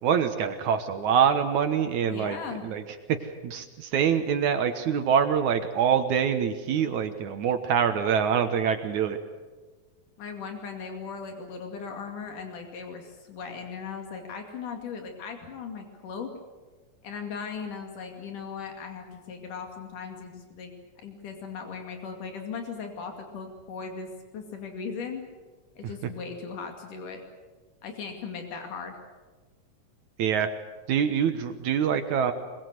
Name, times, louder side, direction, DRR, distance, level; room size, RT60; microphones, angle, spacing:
voice 1, 0.0-2.8 3.2-9.2 30.2-30.5 30.9-32.3, right 7 dB, 75° right, 7 dB, 2.6 m, -25 dB
voice 2, 2.1-2.6 10.2-16.3 17.0-20.7 21.0-25.3 25.8-27.2 27.8-29.0, left 5 dB, 90° left, 4 dB, 4.1 m, -38 dB
24.0 x 22.5 x 8.0 m, 1.3 s
omnidirectional pair, 3.5 m